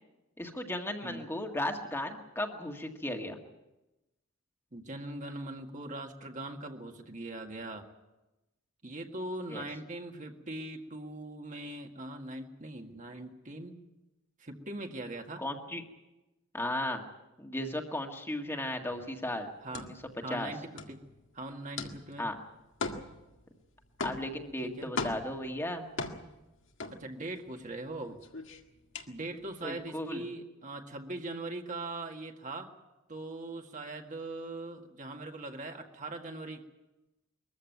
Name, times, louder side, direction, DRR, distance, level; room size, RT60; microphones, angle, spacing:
voice 1, 0.4-3.4 9.5-9.6 15.4-15.8 16.5-17.0 17.4-19.9 20.3-20.5 22.2-22.4 24.0-25.8 29.6-30.2, left 1 dB, 10° left, 2 dB, 1.9 m, -35 dB
voice 2, 4.7-7.9 8.8-13.8 14.4-15.4 19.6-19.9 20.2-21.0 21.3-22.3 24.6-24.9 27.0-28.2 29.1-32.7 33.1-36.6, right 2 dB, 40° right, 3 dB, 1.9 m, -41 dB
sound 1, 18.9-27.6 27.9-29.8, left 3 dB, 65° left, 1.9 m, -40 dB
22.0 x 14.5 x 9.4 m, 1.0 s
head